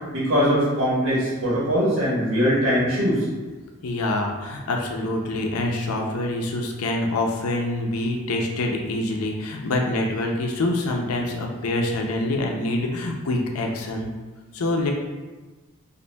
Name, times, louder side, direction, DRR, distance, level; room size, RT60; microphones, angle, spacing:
voice 1, 0.1-3.2, equal, 70° right, -7 dB, 1.3 m, -21 dB
voice 2, 3.8-14.1 14.5-14.9, left 2 dB, 85° left, 1 dB, 0.5 m, -25 dB
5.1 x 2.5 x 2.2 m, 1.2 s
head